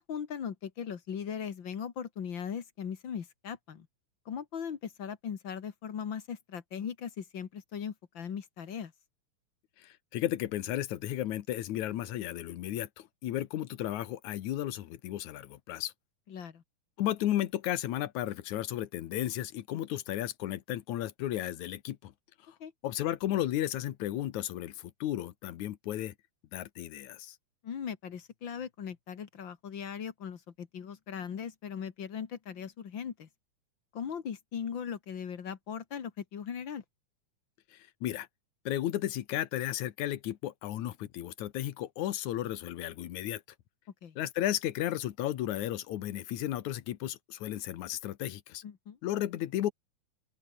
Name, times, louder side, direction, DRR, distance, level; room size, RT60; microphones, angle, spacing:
voice 1, 0.0-3.9 4.3-8.9 16.3-16.6 22.6-22.7 27.6-33.3 33.9-36.8 44.0-44.2 48.6-49.0, left 7 dB, 45° left, 2.0 m, -39 dB
voice 2, 10.1-15.9 17.0-22.1 22.8-26.1 26.5-27.4 38.0-38.3 38.7-43.4 44.2-48.6 49.0-49.7, left 13 dB, 80° left, 2.6 m, -34 dB
open air
omnidirectional pair, 3.3 m